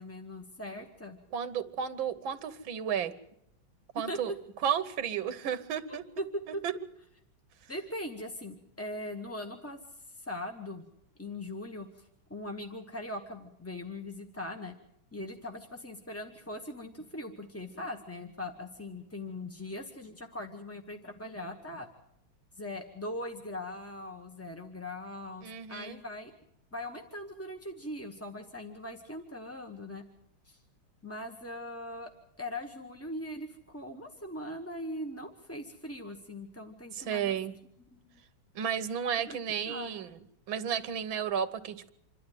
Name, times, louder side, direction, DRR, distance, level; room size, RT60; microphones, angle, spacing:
voice 1, 0.0-1.2 4.1-4.2 5.9-6.2 6.5-6.6 7.7-10.8 11.2-14.7 15.1-21.9 22.5-26.3 26.7-30.0 30.4-30.6 31.0-32.1 32.4-37.4 37.9-38.2 39.2-39.4 39.7-40.0, left 1 dB, 10° left, 4 dB, 0.7 m, -40 dB
voice 2, 1.3-3.1 4.0-4.3 4.6-6.0 6.6-6.7 25.4-26.0 36.9-37.5 38.6-40.1 40.5-41.9, right 8 dB, 75° right, 12 dB, 1.9 m, -32 dB
26.5 x 12.0 x 9.2 m, 0.75 s
omnidirectional pair, 2.2 m